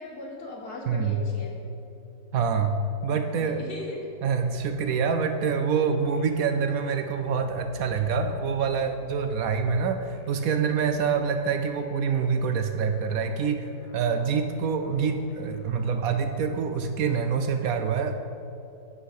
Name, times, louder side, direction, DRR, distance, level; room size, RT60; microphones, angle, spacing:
voice 1, 0.0-1.6 3.1-4.1, left 2 dB, 70° left, -1 dB, 2.1 m, -39 dB
voice 2, 0.9-1.2 2.3-3.6 4.2-18.2, right 6 dB, 70° right, 7 dB, 0.9 m, -26 dB
sound 1, 4.3-16.9, left 3 dB, 85° left, 1.3 m, -49 dB
10.5 x 4.7 x 8.0 m, 2.7 s
omnidirectional pair, 1.7 m